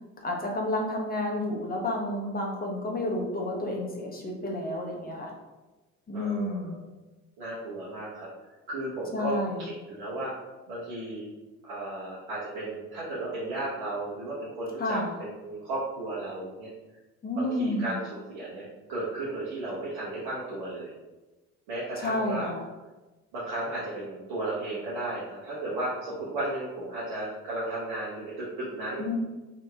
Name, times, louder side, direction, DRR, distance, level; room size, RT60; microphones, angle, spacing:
voice 1, 0.2-5.3 6.1-6.8 9.1-9.6 14.8-15.1 17.2-17.9 22.0-22.7 29.0-29.2, left 1 dB, 20° left, -1 dB, 0.9 m, -30 dB
voice 2, 6.1-6.8 7.4-8.3 8.7-10.3 10.7-11.3 11.6-16.7 17.3-20.9 21.7-22.5 23.3-29.2, right 2 dB, 65° right, -9 dB, 1.1 m, -34 dB
2.9 x 2.8 x 3.4 m, 1.1 s
figure-of-eight pair, 50°, 41 cm